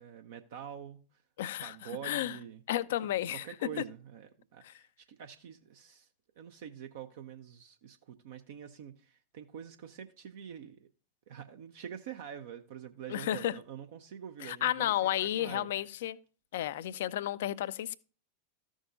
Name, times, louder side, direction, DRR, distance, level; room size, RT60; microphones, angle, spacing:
voice 1, 0.0-1.2 1.6-2.6 3.0-6.1 6.4-10.9 11.3-15.7, right 9 dB, 55° right, 0.7 m, -46 dB
voice 2, 1.4-1.7 2.0-2.4 2.7-3.4 4.6-4.7 13.1-13.5 14.4-16.2 16.5-18.0, left 12 dB, 55° left, 0.5 m, -32 dB
14.0 x 6.3 x 2.6 m
figure-of-eight pair, 90°, 0 cm